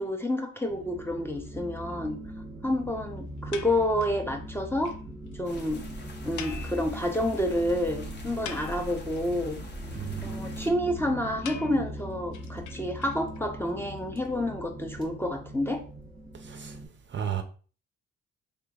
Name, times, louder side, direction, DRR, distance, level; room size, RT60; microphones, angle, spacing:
voice 1, 0.0-2.2 2.6-4.9 5.4-5.8 6.2-9.6 10.2-15.8, left 1 dB, 10° left, 0.6 m, -29 dB
sound 1, 0.6-16.9, equal, 15° right, 1.1 m, -41 dB
sound 2, 3.5-4.2 4.6-4.7 4.8-5.0 5.3-5.4 5.5-5.7 6.4-7.4 7.7-7.8 8.2-9.2 11.4-13.4, left 8 dB, 75° left, 0.5 m, -43 dB
sound 3, 5.4-10.7, equal, 35° left, 0.8 m, -43 dB
voice 2, 9.9-10.3 16.4-16.8 17.1-17.4, right 9 dB, 40° right, 0.5 m, -33 dB
3.7 x 3.3 x 2.3 m
cardioid pair, 90°, 30 cm